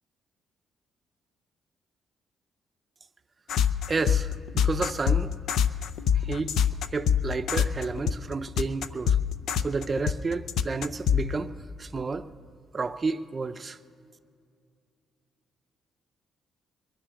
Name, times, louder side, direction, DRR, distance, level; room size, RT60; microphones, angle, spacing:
sound 1, 3.5-11.3, left 8 dB, 75° left, 0.5 m, -24 dB
voice 1, 3.9-5.3 6.1-6.5 6.9-9.2 9.6-11.5 11.8-12.3 12.7-13.8, right 4 dB, 35° right, 0.6 m, -31 dB
22.0 x 10.5 x 6.3 m
cardioid pair, 90°, 0 cm